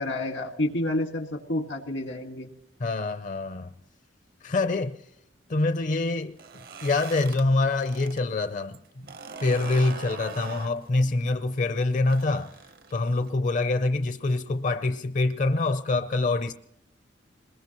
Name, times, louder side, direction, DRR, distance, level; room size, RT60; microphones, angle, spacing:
voice 1, 0.0-2.5, left 1 dB, 85° left, 1.8 m, -29 dB
voice 2, 2.8-3.7 4.4-5.0 5.5-6.4 6.8-8.8 9.4-12.6 12.9-16.5, left 2 dB, 45° left, 0.5 m, -25 dB
sound 1, 6.3-8.2 8.5-13.3, right 4 dB, 55° right, 0.9 m, -42 dB
21.5 x 20.5 x 3.0 m
head